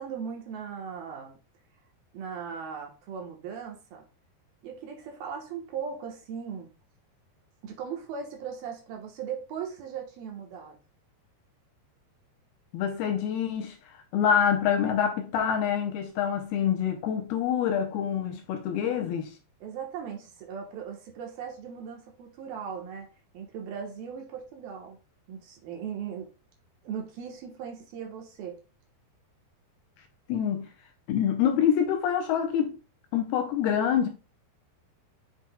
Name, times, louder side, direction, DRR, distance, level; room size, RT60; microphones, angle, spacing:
voice 1, 0.0-1.3 2.1-4.1 4.6-6.7 7.6-10.8 19.6-23.1 23.3-25.0 25.3-26.3 26.8-28.6, right 7 dB, 70° right, 2.7 m, -38 dB
voice 2, 12.7-19.4 30.3-30.7 31.1-32.8 33.1-34.1, left 8 dB, 80° left, 2.4 m, -26 dB
7.5 x 6.0 x 2.2 m
omnidirectional pair, 5.0 m